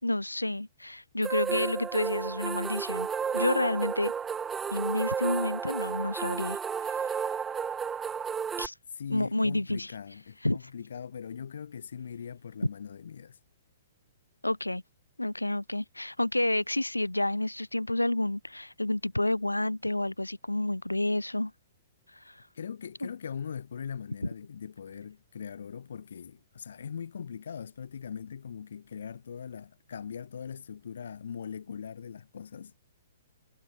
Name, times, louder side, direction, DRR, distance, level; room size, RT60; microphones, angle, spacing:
voice 1, 0.0-3.1 3.3-4.1 4.7-6.6 6.8-7.0 8.6-8.7 9.1-9.9 10.4-10.7 14.4-14.8 15.2-21.5 22.3-22.4, left 1 dB, 85° left, 2.5 m, -29 dB
sound 1, 1.2-8.7, right 7 dB, 15° right, 1.2 m, -32 dB
voice 2, 8.9-13.4 22.5-32.8, left 7 dB, 60° left, 5.9 m, -41 dB
figure-of-eight pair, 115°, 0 cm